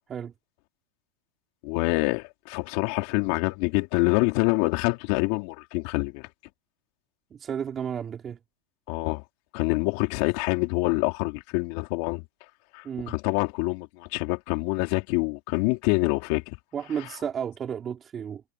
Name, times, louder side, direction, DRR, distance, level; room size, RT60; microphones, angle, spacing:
voice 1, 1.6-6.3 8.9-9.2 9.5-12.2 12.7-16.6, left 25 dB, 55° left, 4.0 m, -26 dB
voice 2, 7.3-8.4 12.8-13.1 16.7-18.4, right 8 dB, 25° right, 4.5 m, -32 dB
supercardioid pair, 145°, 0 cm